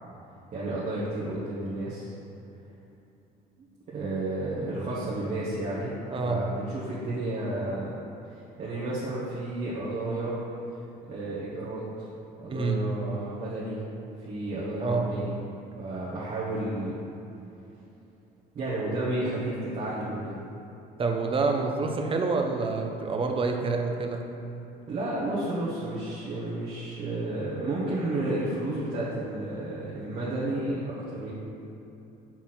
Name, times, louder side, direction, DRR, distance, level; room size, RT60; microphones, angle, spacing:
voice 1, 0.5-2.1 3.9-7.9 8.3-10.4 11.1-12.1 12.4-13.8 14.2-15.3 15.8-17.0 18.5-20.3 24.9-31.3, right 1 dB, 50° right, -8 dB, 1.4 m, -32 dB
voice 2, 6.1-6.4 12.5-12.8 14.8-15.1 21.0-24.2, right 3 dB, 30° right, 3 dB, 0.8 m, -27 dB
5.9 x 4.3 x 6.0 m, 2.9 s
cardioid pair, 110°, 17 cm